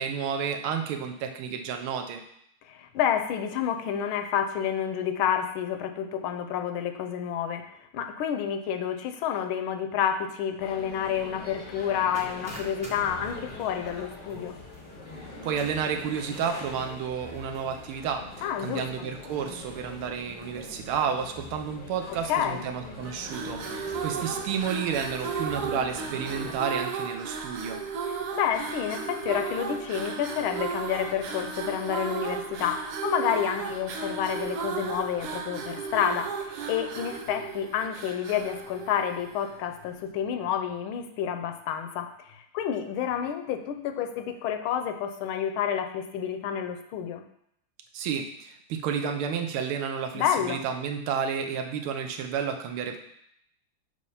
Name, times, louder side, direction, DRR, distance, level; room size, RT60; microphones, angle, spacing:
voice 1, 0.0-2.2 15.4-27.8 47.9-53.0, right 7 dB, 85° right, 5 dB, 1.6 m, -31 dB
voice 2, 2.7-7.6 7.9-14.6 18.4-19.1 22.1-22.6 28.3-47.2 50.1-50.6, left 9 dB, 80° left, 6 dB, 1.4 m, -29 dB
sound 1, 10.6-26.5, left 2 dB, 45° left, 0.6 m, -43 dB
sound 2, 12.1-18.0, equal, 5° right, 0.8 m, -50 dB
sound 3, 23.2-39.6, right 5 dB, 65° right, 1.0 m, -35 dB
6.6 x 3.3 x 5.5 m, 0.73 s
omnidirectional pair, 2.3 m